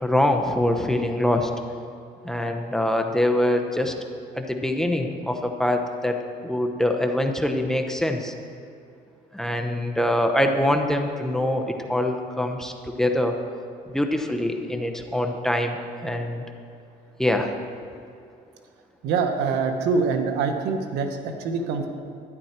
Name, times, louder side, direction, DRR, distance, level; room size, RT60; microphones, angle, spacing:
voice 1, 0.0-1.5 2.2-3.9 4.4-6.2 6.4-8.3 9.3-13.4 13.9-16.4 17.2-17.5, left 1 dB, 5° left, 4 dB, 0.9 m, -24 dB
voice 2, 19.0-21.9, right 5 dB, 85° right, 6 dB, 1.1 m, -24 dB
12.5 x 10.5 x 4.4 m, 2.4 s
cardioid pair, 110°, 17 cm